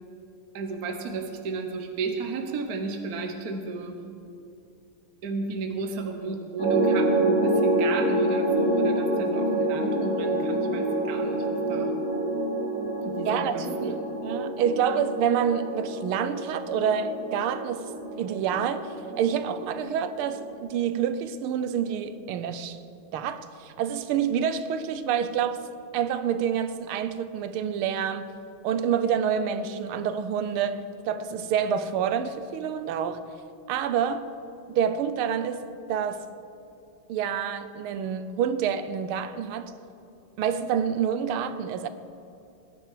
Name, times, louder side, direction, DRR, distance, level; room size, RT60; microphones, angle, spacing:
voice 1, 0.5-4.0 5.2-11.9 13.0-14.1, right 3 dB, 50° right, 1.3 m, -33 dB
sound 1, 6.6-20.6, right 1 dB, 40° left, 3.1 m, -27 dB
voice 2, 13.2-17.9 18.2-22.8 23.1-25.6 25.9-28.3 28.6-33.2 33.7-34.3 34.7-36.3 37.1-39.8 40.4-41.9, right 8 dB, 80° right, 1.6 m, -28 dB
19.5 x 10.0 x 4.9 m
omnidirectional pair, 2.3 m